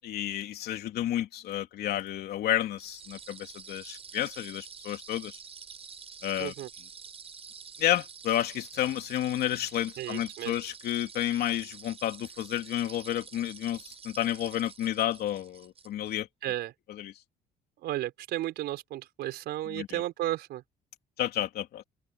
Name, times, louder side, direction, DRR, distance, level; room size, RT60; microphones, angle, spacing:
voice 1, 0.0-5.4 6.2-6.5 7.8-16.3 17.0-17.1 19.7-20.0 21.2-21.8, left 12 dB, 70° left, 3.4 m, -31 dB
sound 1, 2.8-16.2, right 6 dB, 35° right, 6.4 m, -48 dB
voice 2, 6.4-6.7 10.0-10.5 16.4-16.7 17.8-20.6, right 14 dB, 75° right, 4.8 m, -33 dB
cardioid pair, 110°, 17 cm